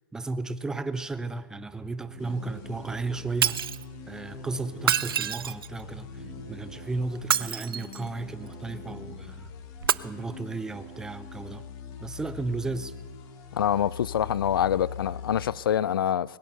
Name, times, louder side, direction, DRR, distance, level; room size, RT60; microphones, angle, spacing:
voice 1, 0.1-3.7 4.1-6.2 6.5-9.5 10.0-11.6 12.0-12.9, right 3 dB, 5° right, 0.5 m, -34 dB
sound 1, 1.7-11.7, right 9 dB, 35° right, 1.7 m, -49 dB
sound 2, 2.2-15.6, left 7 dB, 30° left, 1.4 m, -43 dB
Shatter, 3.4-3.8 4.8-5.8 7.2-8.1 9.8-9.9, right 9 dB, 85° right, 0.5 m, -26 dB
voice 2, 13.5-16.4, left 10 dB, 75° left, 0.4 m, -26 dB
21.0 x 9.0 x 6.6 m
hypercardioid pair, 145°, 12 cm